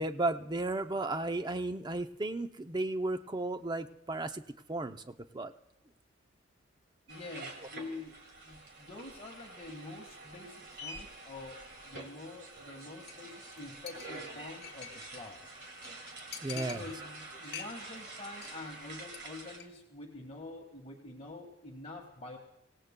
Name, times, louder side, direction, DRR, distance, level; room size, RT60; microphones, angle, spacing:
voice 1, 0.0-4.4 4.7-5.0 5.3-5.5 16.4-16.8, right 2 dB, 20° right, 8 dB, 0.5 m, -34 dB
voice 2, 7.1-11.6 11.8-15.4 16.5-22.4, left 2 dB, 30° left, 1 dB, 1.6 m, -46 dB
sound 1, 7.1-19.6, right 2 dB, 55° right, 2.2 m, -47 dB
Chink clink, 13.1-13.3 13.5-13.6 13.9-15.2 15.5-15.6 15.8-15.9 16.3-17.2 17.5-18.0 18.3-18.6 18.9-19.2 19.5-19.7, left 8 dB, 55° left, 1.4 m, -46 dB
25.5 x 17.5 x 2.2 m, 0.89 s
head